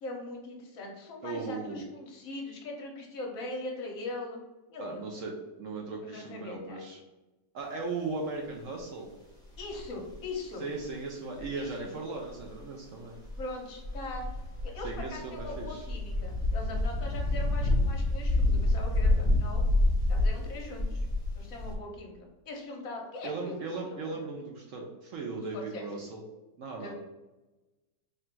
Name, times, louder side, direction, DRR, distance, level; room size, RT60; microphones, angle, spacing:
voice 1, 0.0-4.4 4.7-5.2 6.0-6.8 9.6-10.7 11.5-11.9 13.4-14.3 14.6-19.6 20.1-21.1 21.4-24.1 25.5-26.1 26.8-26.9, left 2 dB, 60° left, 0 dB, 1.2 m, -41 dB
voice 2, 1.2-1.8 4.8-7.0 7.5-9.1 10.6-13.2 14.8-15.9 23.2-26.2 26.6-26.9, right 3 dB, 65° right, 0 dB, 0.8 m, -37 dB
sound 1, 9.5-10.2 11.4-11.6 12.4-12.6 13.2-21.7, left 2 dB, 5° left, 0.6 m, -28 dB
3.3 x 2.5 x 4.3 m, 1.1 s
omnidirectional pair, 1.8 m